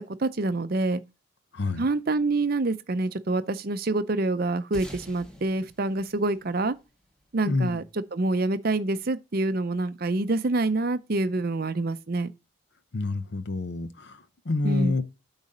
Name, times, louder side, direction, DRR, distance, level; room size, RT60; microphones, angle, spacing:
voice 1, 0.2-1.0 1.8-6.8 7.3-7.8 8.1-12.3 14.6-14.9, right 2 dB, 45° right, 0.6 m, -26 dB
voice 2, 1.5-1.9 7.5-7.8 12.9-15.0, left 2 dB, 55° left, 0.7 m, -28 dB
sound 1, 4.7-7.5, equal, ahead, 1.4 m, -46 dB
8.8 x 4.0 x 5.4 m
head